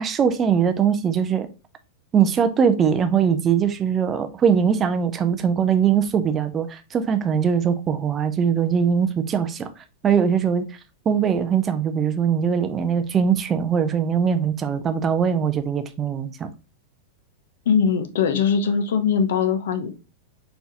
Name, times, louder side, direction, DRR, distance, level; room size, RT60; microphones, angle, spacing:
voice 1, 0.0-1.5 2.1-9.7 10.0-10.6 11.1-16.5, right 7 dB, 15° right, 0.3 m, -21 dB
voice 2, 17.7-19.9, left 6 dB, 65° left, 0.7 m, -21 dB
4.4 x 3.3 x 2.8 m
supercardioid pair, 180°, 0 cm